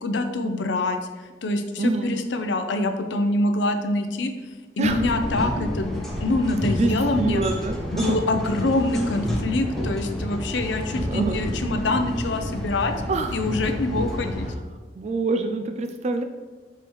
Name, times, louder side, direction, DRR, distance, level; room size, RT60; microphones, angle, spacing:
voice 1, 0.0-1.0 1.4-4.3 4.8-7.4 7.9-12.9 13.3-14.5, left 2 dB, 90° left, 7 dB, 0.6 m, -25 dB
voice 2, 1.8-2.2 4.8-5.0 6.7-8.2 11.1-11.4 13.1-13.4 14.9-16.2, right 3 dB, 40° right, 7 dB, 0.3 m, -26 dB
sound 1, 4.8-14.5, equal, ahead, 0.9 m, -29 dB
6.8 x 4.7 x 3.1 m, 1.3 s
head